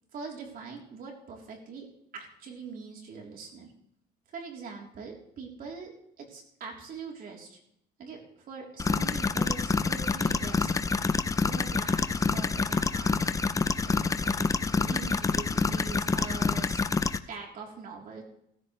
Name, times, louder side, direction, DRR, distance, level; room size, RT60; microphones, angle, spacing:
voice 1, 0.1-1.9 2.1-3.7 4.3-5.9 6.2-7.6 8.0-10.7 11.4-13.3 13.8-13.9 14.2-16.8 17.3-18.2, right 5 dB, 60° right, 0 dB, 3.6 m, -42 dB
sound 1, 8.8-17.2, left 4 dB, 20° left, 0.6 m, -27 dB
16.0 x 14.5 x 3.3 m, 0.74 s
cardioid pair, 110°, 17 cm